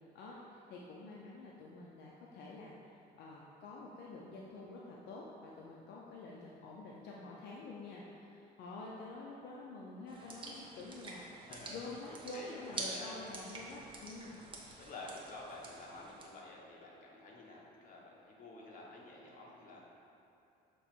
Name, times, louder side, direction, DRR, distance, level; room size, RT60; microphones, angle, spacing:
voice 1, 0.1-14.3, left 3 dB, 80° left, -3 dB, 0.6 m, -48 dB
sound 1, 10.1-16.2, right 3 dB, 30° right, 0.9 m, -47 dB
voice 2, 11.5-12.0 12.3-13.2 14.8-19.9, left 2 dB, 50° left, -3 dB, 1.2 m, -50 dB
6.9 x 3.0 x 4.4 m, 2.8 s
cardioid pair, 110°, 17 cm